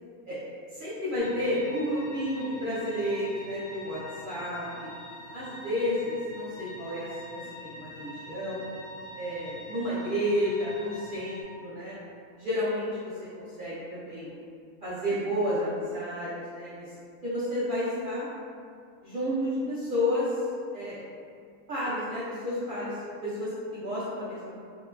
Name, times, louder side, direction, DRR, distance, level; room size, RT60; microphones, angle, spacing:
voice 1, 0.7-4.9 5.3-7.1 7.6-8.6 9.2-12.0 12.4-14.3 14.8-16.9 17.2-18.3 19.0-20.3 20.7-21.0 21.7-23.0 23.2-24.6, left 1 dB, 70° right, -12 dB, 0.4 m, -31 dB
sound 1, 1.2-11.4, left 1 dB, 80° left, 1.1 m, -44 dB
3.0 x 2.1 x 2.2 m, 2.3 s
omnidirectional pair, 1.5 m